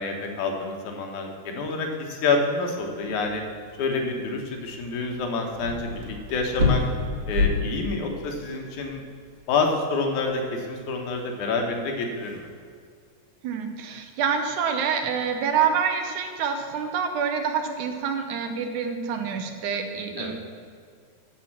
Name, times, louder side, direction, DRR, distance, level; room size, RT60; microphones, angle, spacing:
voice 1, 0.0-3.4 3.8-6.8 7.3-9.0 9.5-12.5 20.2-20.3, left 3 dB, 85° left, 2 dB, 2.6 m, -28 dB
sound 1, 2.8-12.7, left 3 dB, 45° right, 2.1 m, -30 dB
voice 2, 13.4-20.3, right 6 dB, 85° right, 6 dB, 2.3 m, -27 dB
12.5 x 4.4 x 7.3 m, 2.1 s
omnidirectional pair, 3.3 m